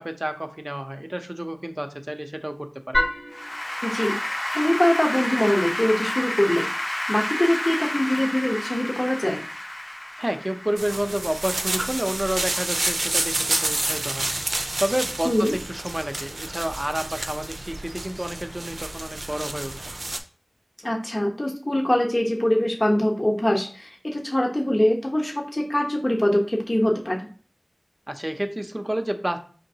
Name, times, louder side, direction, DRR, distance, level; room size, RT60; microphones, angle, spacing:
voice 1, 0.0-3.0 10.2-14.3 14.8-19.7 28.1-29.4, right 1 dB, 25° right, 7 dB, 0.7 m, -29 dB
Applause / Keyboard (musical), 2.9-12.3, left 1 dB, 70° left, 1.8 m, -29 dB
voice 2, 3.8-4.2 4.5-6.7 7.1-9.4 15.2-15.5 20.8-27.2, left 1 dB, 45° left, 0 dB, 1.0 m, -23 dB
sound 1, 10.8-20.2, right 2 dB, 85° right, 0.5 m, -29 dB
5.0 x 3.7 x 2.8 m, 0.41 s
wide cardioid pair, 40°, 0 cm